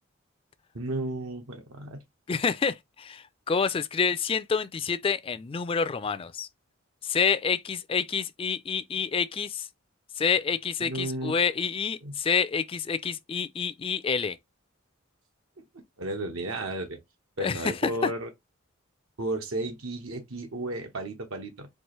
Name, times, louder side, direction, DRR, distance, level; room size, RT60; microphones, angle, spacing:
voice 1, 0.7-2.0 10.8-11.4 12.0-12.1 15.6-15.7 16.0-17.0 17.4-18.3 19.2-21.7, right 1 dB, 90° right, 1.0 m, -33 dB
voice 2, 2.3-6.5 7.0-9.7 10.2-14.4 17.4-18.1, left 6 dB, 25° left, 0.3 m, -28 dB
4.7 x 2.5 x 3.0 m
head